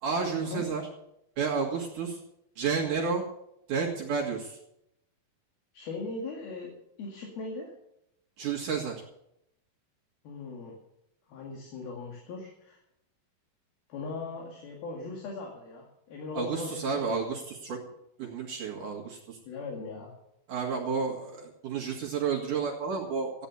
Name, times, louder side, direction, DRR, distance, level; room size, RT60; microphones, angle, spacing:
voice 1, 0.0-0.8 1.4-2.2 2.6-3.2 3.7-4.6 8.4-8.9 16.3-17.8 18.2-19.4 20.5-23.5, right 5 dB, 60° right, -2 dB, 3.2 m, -31 dB
voice 2, 5.7-6.7 7.0-7.7 10.2-10.7 11.3-12.8 13.9-17.2 19.5-20.1, left 3 dB, 75° left, -1 dB, 4.1 m, -39 dB
15.0 x 10.0 x 7.0 m, 0.81 s
omnidirectional pair, 4.3 m